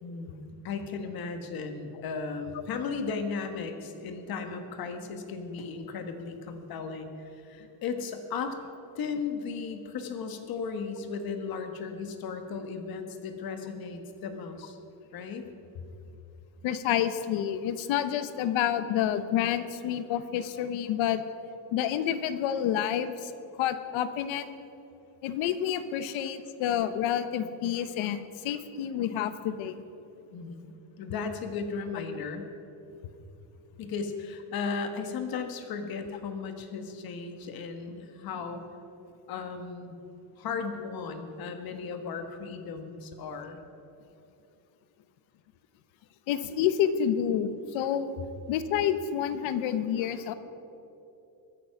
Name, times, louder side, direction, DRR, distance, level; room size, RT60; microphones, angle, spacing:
voice 1, 0.0-8.6 8.9-14.8 15.1-15.4 30.3-32.5 33.8-38.7 39.3-40.0 40.4-43.6, left 5 dB, 50° left, 7 dB, 1.5 m, -36 dB
voice 2, 16.6-21.2 21.7-23.3 23.6-24.5 25.2-29.8 46.3-48.2 48.5-50.3, left 10 dB, 80° left, 12 dB, 1.1 m, -29 dB
22.0 x 9.4 x 5.9 m, 2.9 s
cardioid pair, 180°, 46 cm